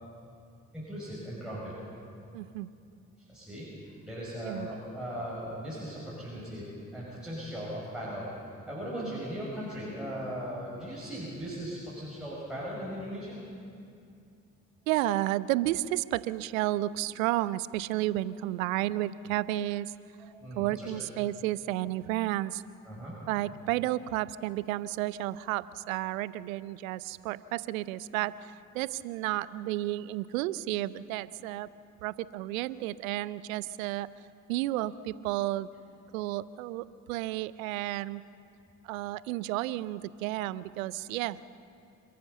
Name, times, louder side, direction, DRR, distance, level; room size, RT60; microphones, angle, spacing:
voice 1, 0.7-1.7 3.3-3.7 4.1-8.3 8.7-13.4 20.2-20.9 22.8-23.2, equal, ahead, -8 dB, 6.9 m, -38 dB
voice 2, 2.3-2.7 4.4-4.7 8.9-9.2 14.9-19.9 20.6-22.6 23.3-31.7 32.0-34.1 34.5-35.7 36.1-38.2 38.8-41.6, right 15 dB, 75° right, 19 dB, 0.6 m, -32 dB
28.0 x 13.5 x 7.1 m, 2.5 s
figure-of-eight pair, 40°, 41 cm